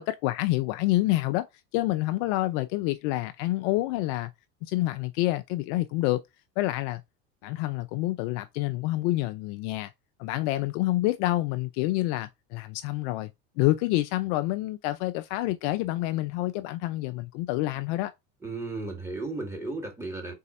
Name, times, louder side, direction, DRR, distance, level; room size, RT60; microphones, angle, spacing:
voice 1, 0.0-1.5 1.7-4.3 4.6-6.2 6.6-7.0 7.4-9.9 10.2-13.3 13.6-18.1, left 17 dB, 60° left, 0.5 m, -27 dB
voice 2, 18.4-20.3, right 3 dB, 5° right, 1.6 m, -34 dB
4.1 x 2.7 x 4.1 m
hypercardioid pair, 90°, 41 cm